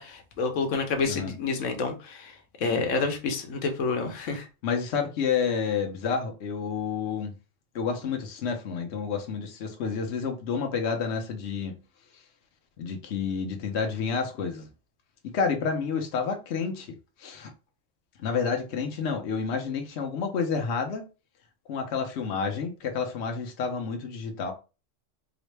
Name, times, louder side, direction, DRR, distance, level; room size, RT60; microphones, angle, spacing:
voice 1, 0.0-2.3 2.6-4.5, left 4 dB, 90° left, 1.1 m, -28 dB
voice 2, 4.6-7.3 7.7-11.7 12.8-14.7 15.2-16.9 17.2-17.5 18.2-21.0 21.7-24.5, left 5 dB, 65° left, 1.0 m, -29 dB
3.9 x 2.1 x 3.2 m
omnidirectional pair, 1.3 m